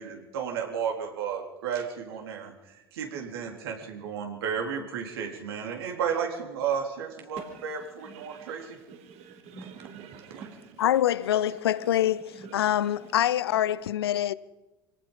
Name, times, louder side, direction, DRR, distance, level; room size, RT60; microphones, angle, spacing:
voice 1, 0.0-8.8, right 7 dB, 80° right, 3.9 m, -33 dB
voice 2, 7.4-10.9 11.2-13.6, right 6 dB, 60° right, 4.3 m, -48 dB
voice 3, 10.8-14.3, left 12 dB, 80° left, 0.7 m, -25 dB
26.0 x 18.0 x 5.6 m
hypercardioid pair, 65°, 13 cm